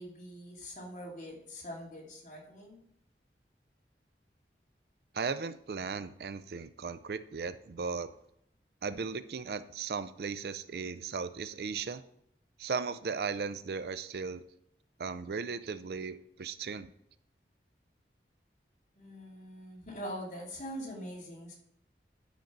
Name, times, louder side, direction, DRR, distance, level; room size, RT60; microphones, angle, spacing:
voice 1, 0.0-2.8 19.0-21.5, equal, 40° left, -3 dB, 2.7 m, -43 dB
voice 2, 5.1-8.1 8.8-12.0 12.6-14.4 15.0-16.9, right 5 dB, 65° right, 13 dB, 0.4 m, -36 dB
10.5 x 5.3 x 6.0 m, 0.76 s
head